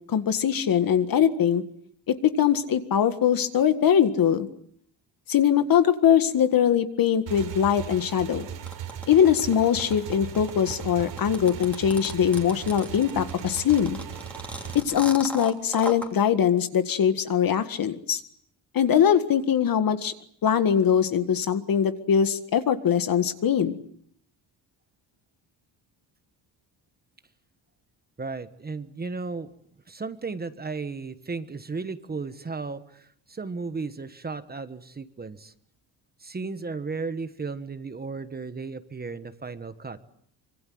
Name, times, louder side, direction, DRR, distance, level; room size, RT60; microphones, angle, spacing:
voice 1, 0.1-1.6 2.1-4.5 5.3-8.5 9.1-14.0 14.7-18.2 18.7-20.1 20.4-23.7, left 8 dB, 50° left, 10 dB, 1.8 m, -22 dB
Motorcycle / Engine, 7.3-14.8, right 10 dB, 80° right, 3.7 m, -38 dB
sound 1, 8.7-16.1, equal, 5° left, 3.1 m, -37 dB
voice 2, 28.2-29.5 29.9-35.5 36.2-40.0, right 4 dB, 20° right, 11 dB, 1.2 m, -35 dB
25.0 x 24.0 x 7.7 m, 0.65 s
cardioid pair, 145°, 44 cm